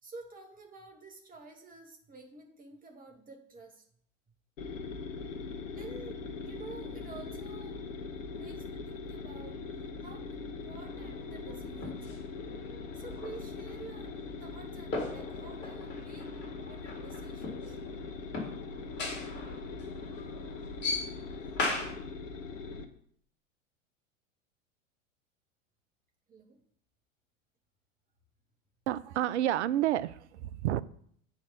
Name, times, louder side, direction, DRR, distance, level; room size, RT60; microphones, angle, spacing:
voice 1, 0.0-3.8 5.7-8.0 8.3-12.2 12.9-17.8 26.3-26.6, right 3 dB, 20° right, 2 dB, 2.1 m, -50 dB
sound 1, 4.6-22.8, left 4 dB, 75° left, 1.1 m, -41 dB
sound 2, 10.8-21.9, left 3 dB, 25° left, 3.8 m, -40 dB
voice 2, 28.9-30.8, right 12 dB, 60° right, 18 dB, 0.6 m, -30 dB
8.5 x 4.8 x 6.0 m, 0.62 s
figure-of-eight pair, 90°, 39 cm